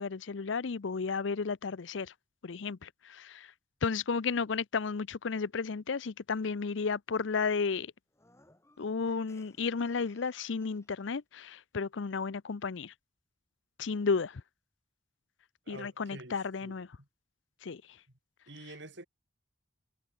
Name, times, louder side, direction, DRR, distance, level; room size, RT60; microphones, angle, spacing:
voice 1, 0.0-2.1 2.4-3.5 3.8-7.9 8.8-12.9 13.8-14.4 15.7-16.9 17.6-17.8, left 5 dB, 65° left, 0.6 m, -33 dB
sound 1, 8.1-11.1, left 2 dB, 15° left, 5.9 m, -65 dB
voice 2, 15.7-17.1 18.5-19.1, right 2 dB, 60° right, 4.4 m, -48 dB
head